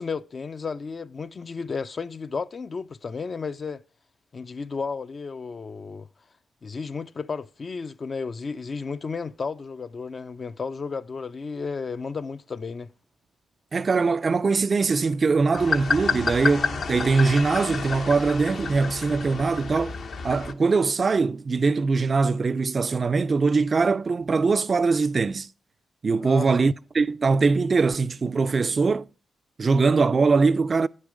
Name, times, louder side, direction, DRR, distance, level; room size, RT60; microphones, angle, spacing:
voice 1, 0.0-3.8 4.3-6.1 6.6-12.9 26.2-26.7, left 5 dB, 45° left, 0.4 m, -33 dB
voice 2, 13.7-20.0 20.2-25.5 26.0-29.1 29.6-30.9, right 4 dB, 45° right, 0.3 m, -22 dB
sound 1, 15.5-20.5, left 5 dB, 65° left, 0.8 m, -29 dB
9.6 x 6.5 x 5.0 m
cardioid pair, 65°, 0 cm